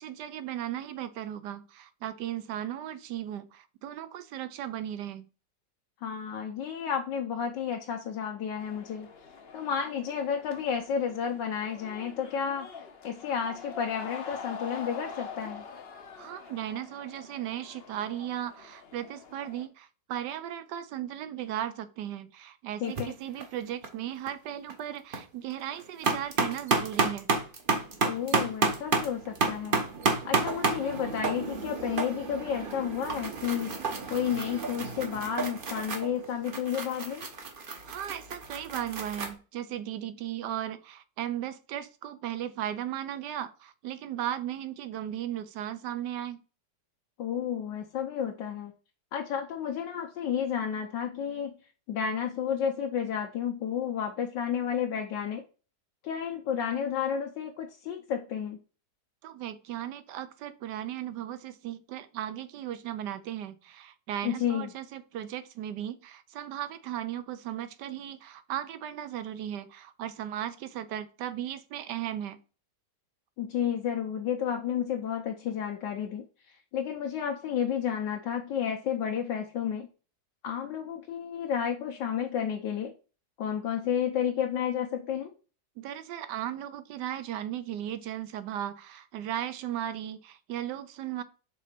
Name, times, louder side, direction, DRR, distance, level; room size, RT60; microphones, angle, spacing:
voice 1, 0.0-5.3 16.2-27.3 37.8-46.4 59.2-72.4 85.8-91.2, right 11 dB, 75° right, 12 dB, 1.2 m, -36 dB
voice 2, 6.0-9.1 9.5-12.7 13.0-15.6 22.8-23.2 28.0-29.8 30.2-33.8 34.1-37.3 47.2-48.7 49.1-51.5 51.9-55.4 56.0-58.6 64.2-64.7 73.4-79.9 80.4-82.9 83.4-85.3, left 8 dB, 80° left, 2 dB, 1.5 m, -31 dB
sound 1, 8.6-19.7, left 5 dB, 50° left, 0.7 m, -45 dB
sound 2, 22.8-23.0 23.4-23.9 24.3-24.4 24.7-25.2 25.6-39.3, right 4 dB, 40° right, 0.9 m, -31 dB
5.4 x 3.9 x 5.0 m, 0.35 s
omnidirectional pair, 1.9 m